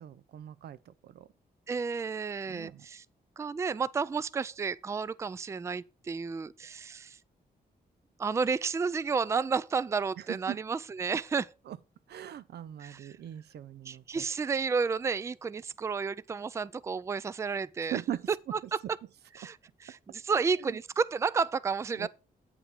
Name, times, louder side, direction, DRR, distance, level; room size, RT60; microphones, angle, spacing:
voice 1, 0.0-1.3 2.5-2.9 10.2-10.6 11.7-11.8 12.1-14.2 17.8-18.3 19.4-19.5 20.3-20.8 21.9-22.1, right 11 dB, 90° right, 0.6 m, -40 dB
voice 2, 1.7-3.0 3.4-7.2 8.2-11.5 12.8-13.1 13.9-18.0 19.4-19.6 19.8-22.1, right 5 dB, 15° right, 0.3 m, -31 dB
8.7 x 5.1 x 4.7 m
wide cardioid pair, 140°, 17 cm